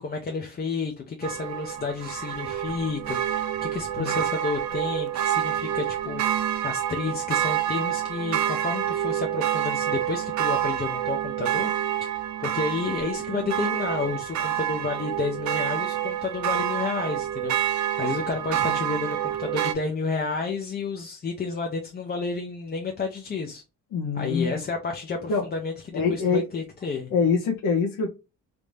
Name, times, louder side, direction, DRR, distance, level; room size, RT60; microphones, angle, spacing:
voice 1, 0.0-11.7 12.4-23.6 24.1-27.1, left 4 dB, 30° left, 3 dB, 0.6 m, -31 dB
sound 1, 1.2-19.7, right 11 dB, 60° right, 0.6 m, -28 dB
voice 2, 23.9-24.7 25.3-25.4 25.9-26.4 27.1-28.1, left 5 dB, 75° left, -3 dB, 1.1 m, -25 dB
3.4 x 2.7 x 3.1 m, 0.28 s
cardioid pair, 130°, 32 cm